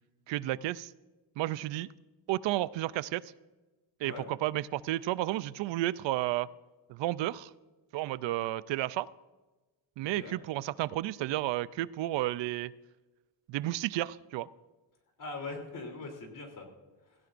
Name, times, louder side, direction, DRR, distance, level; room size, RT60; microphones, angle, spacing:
voice 1, 0.3-0.9 1.4-1.9 2.3-3.2 4.0-6.5 6.9-7.5 7.9-9.1 10.0-12.7 13.5-14.5, right 15 dB, 85° right, 18 dB, 0.5 m, -32 dB
voice 2, 10.0-10.3 15.2-16.7, left 3 dB, 45° left, 2 dB, 3.2 m, -41 dB
17.0 x 16.0 x 2.6 m, 1.2 s
cardioid pair, 135°, 43 cm